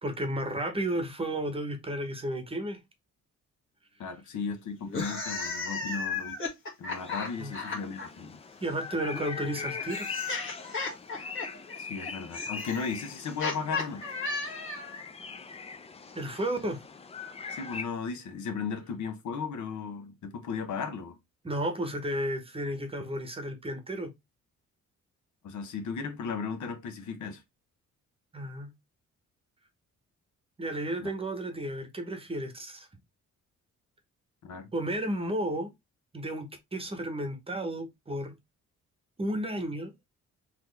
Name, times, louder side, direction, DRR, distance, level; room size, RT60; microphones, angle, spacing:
voice 1, 0.0-2.8 7.4-7.5 8.6-10.1 16.1-16.8 21.4-24.1 28.3-28.7 30.6-32.9 34.7-35.7 36.1-38.3 39.2-39.9, right 1 dB, 20° right, 0.9 m, -33 dB
voice 2, 4.0-6.4 6.8-8.4 11.8-14.1 17.5-21.2 25.4-27.4 31.0-31.1 34.4-34.7, left 5 dB, 75° left, 1.0 m, -36 dB
sound 1, 4.8-8.1 9.1-15.0, left 3 dB, 45° left, 1.6 m, -35 dB
sound 2, 6.9-17.8, left 5 dB, 20° left, 0.4 m, -41 dB
4.0 x 3.0 x 3.2 m
cardioid pair, 135°, 30 cm